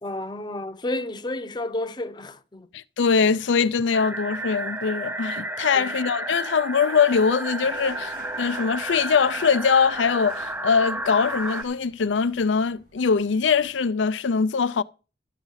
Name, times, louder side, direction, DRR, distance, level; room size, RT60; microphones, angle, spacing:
voice 1, 0.0-2.7 5.7-6.0, left 2 dB, 25° left, 0.8 m, -31 dB
voice 2, 2.7-14.8, left 5 dB, 90° left, 0.5 m, -22 dB
sound 1, 3.9-11.6, right 1 dB, 10° right, 0.6 m, -32 dB
sound 2, 7.6-13.9, right 2 dB, 60° right, 5.5 m, -49 dB
13.0 x 7.1 x 5.6 m
head